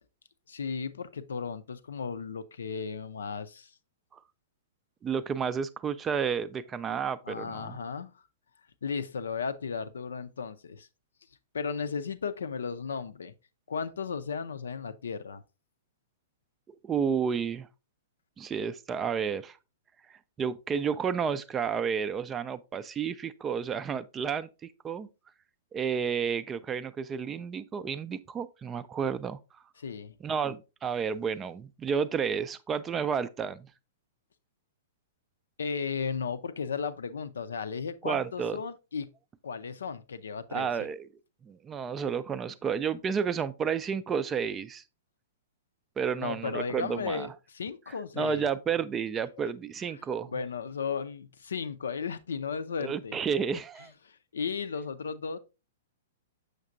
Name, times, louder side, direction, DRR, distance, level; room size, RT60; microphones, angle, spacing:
voice 1, 0.5-3.7 7.2-8.2 8.8-10.9 11.5-13.3 13.7-15.4 29.8-30.2 35.6-39.1 39.4-40.7 46.2-48.5 49.8-53.2 54.0-55.4, left 5 dB, 65° left, 0.5 m, -35 dB
voice 2, 5.0-7.8 16.8-17.7 18.4-19.6 20.4-25.1 25.7-29.4 30.2-33.7 38.0-38.6 40.5-41.1 41.4-44.8 46.0-47.3 48.2-50.3 52.8-53.9, right 6 dB, 20° right, 0.4 m, -31 dB
6.6 x 6.4 x 2.5 m
figure-of-eight pair, 105°, 0 cm